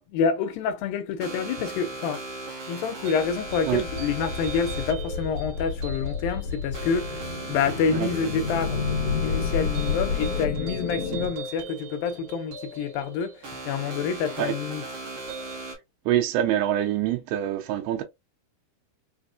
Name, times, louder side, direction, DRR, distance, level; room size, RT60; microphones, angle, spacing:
voice 1, 0.1-2.2 2.7-8.8 9.2-14.9, left 6 dB, 80° left, 2.1 m, -28 dB
sound 1, 1.2-15.8, right 2 dB, 55° right, 1.6 m, -37 dB
sound 2, 3.2-11.3, left 5 dB, 65° left, 1.6 m, -30 dB
voice 2, 16.1-18.0, right 12 dB, 85° right, 2.7 m, -25 dB
6.0 x 2.6 x 2.4 m
omnidirectional pair, 4.5 m